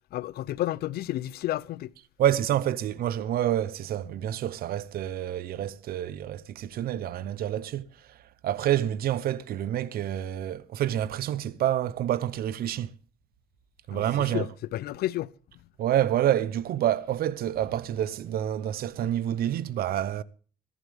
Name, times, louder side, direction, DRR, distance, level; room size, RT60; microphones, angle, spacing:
voice 1, 0.1-1.9 13.9-14.0 14.3-15.3, left 14 dB, 65° left, 0.6 m, -31 dB
voice 2, 2.2-7.9 8.4-12.9 13.9-14.5 15.8-20.2, right 11 dB, 65° right, 0.8 m, -28 dB
21.5 x 11.0 x 3.5 m
cardioid pair, 110°, 17 cm